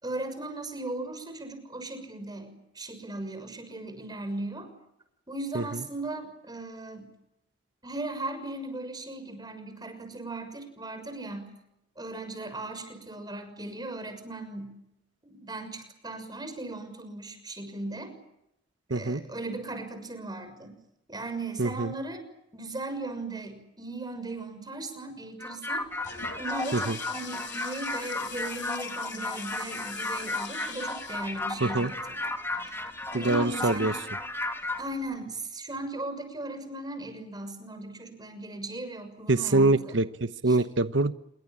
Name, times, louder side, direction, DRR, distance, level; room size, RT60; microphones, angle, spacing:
voice 1, 0.0-4.7 5.3-7.1 7.8-11.5 12.0-14.7 15.2-18.1 18.9-20.7 21.1-22.2 22.5-25.8 26.4-32.1 32.6-32.8 33.1-33.9 34.8-39.9 40.5-40.6, right 2 dB, 20° right, 8 dB, 6.5 m, -37 dB
voice 2, 18.9-19.2 21.6-21.9 26.7-26.9 31.6-31.9 33.1-33.9 39.3-41.1, right 2 dB, 80° right, 12 dB, 1.0 m, -24 dB
sound 1, 25.4-34.8, left 2 dB, 15° left, 2.7 m, -34 dB
Toilet flush, 25.8-35.2, left 7 dB, 90° left, 4.5 m, -45 dB
27.5 x 23.5 x 8.8 m, 0.83 s
head